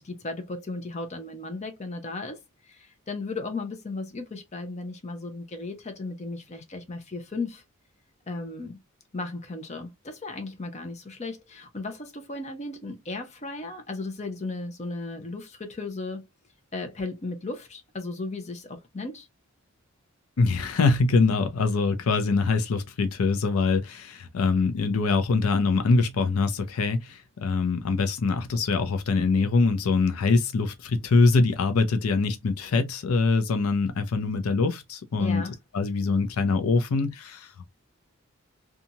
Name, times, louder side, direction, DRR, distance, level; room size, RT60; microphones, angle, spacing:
voice 1, 0.0-7.6 8.3-8.8 9.1-16.2 16.7-19.3 35.2-35.5, left 3 dB, 30° left, 0.6 m, -35 dB
voice 2, 20.4-35.4 35.7-37.7, left 4 dB, 80° left, 0.5 m, -24 dB
2.7 x 2.4 x 2.7 m
head